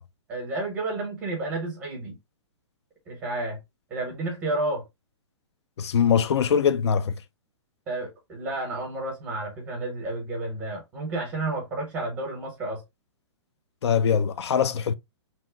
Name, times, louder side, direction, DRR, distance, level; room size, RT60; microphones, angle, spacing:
voice 1, 0.3-2.2 3.1-3.6 3.9-4.8 7.9-12.8, right 2 dB, 10° right, 0.7 m, -31 dB
voice 2, 5.8-7.2 13.8-14.9, left 7 dB, 65° left, 0.4 m, -22 dB
2.8 x 2.0 x 3.3 m
hypercardioid pair, 175°, 15 cm